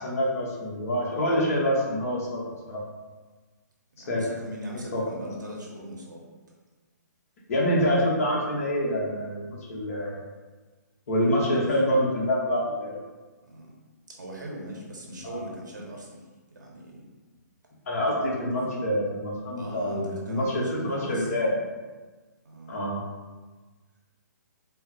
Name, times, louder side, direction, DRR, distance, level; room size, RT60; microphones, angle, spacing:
voice 1, 0.0-2.8 4.1-4.2 4.9-5.2 7.5-10.2 11.1-13.0 15.2-15.4 17.9-21.5 22.7-23.0, equal, 50° left, -3 dB, 1.0 m, -26 dB
voice 2, 4.0-6.3 11.5-11.6 13.4-13.7 14.1-16.2 16.5-17.1 19.6-21.6 22.4-22.9, right 1 dB, 80° right, -2 dB, 0.9 m, -40 dB
3.7 x 2.0 x 2.9 m, 1.3 s
figure-of-eight pair, 135°, 10 cm